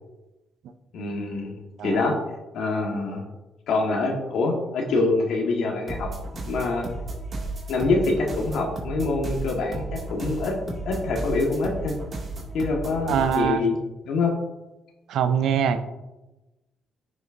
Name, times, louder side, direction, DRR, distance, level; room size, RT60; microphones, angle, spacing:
voice 1, 0.9-1.5 1.8-2.1 2.5-3.2 3.7-6.1 6.4-6.8 7.7-10.5 10.8-12.0 12.5-13.8 14.1-14.3, left 3 dB, 75° left, 0 dB, 1.4 m, -25 dB
sound 1, 5.9-13.5, right 2 dB, 40° right, 2.2 m, -34 dB
voice 2, 13.1-13.6 15.1-15.8, right 8 dB, 80° right, 10 dB, 0.6 m, -23 dB
10.5 x 6.1 x 2.6 m, 1.0 s
cardioid pair, 90°, 0 cm